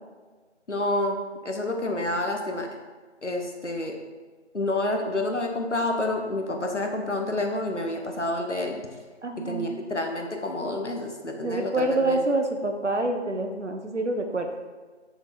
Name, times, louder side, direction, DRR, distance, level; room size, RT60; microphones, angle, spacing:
voice 1, 0.7-1.2 1.4-2.7 3.2-4.0 4.5-8.8 9.4-12.2, left 2 dB, 80° left, 3 dB, 1.4 m, -28 dB
voice 2, 9.2-9.8 11.4-14.5, right 2 dB, 75° right, 4 dB, 1.0 m, -26 dB
6.8 x 4.4 x 5.2 m, 1.4 s
figure-of-eight pair, 170°, 35 cm